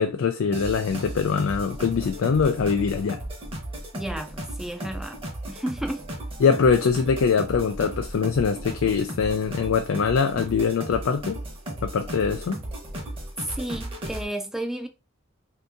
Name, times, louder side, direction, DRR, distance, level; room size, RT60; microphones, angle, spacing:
voice 1, 0.0-3.2 6.4-11.4 11.8-12.6, left 6 dB, 80° left, 0.4 m, -23 dB
sound 1, 0.5-14.2, right 1 dB, 30° right, 0.9 m, -35 dB
voice 2, 3.9-5.2 5.5-6.1 13.4-14.9, right 1 dB, ahead, 0.4 m, -32 dB
2.8 x 2.6 x 3.5 m
head